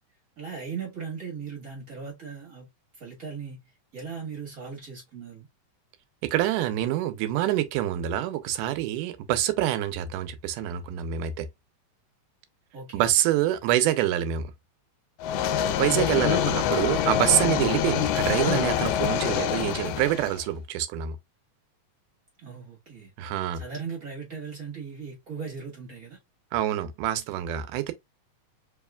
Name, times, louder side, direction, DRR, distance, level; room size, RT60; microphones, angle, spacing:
voice 1, 0.4-2.7 3.0-5.5 12.7-13.1 15.8-16.2 22.4-23.1 23.5-26.2, right 5 dB, 45° right, 1.1 m, -38 dB
voice 2, 6.2-11.5 12.9-14.5 15.8-21.2 23.2-23.6 26.5-27.9, right 12 dB, 85° right, 2.1 m, -26 dB
sound 1, 15.2-20.4, left 10 dB, 85° left, 2.1 m, -25 dB
4.8 x 3.0 x 2.3 m
omnidirectional pair, 3.7 m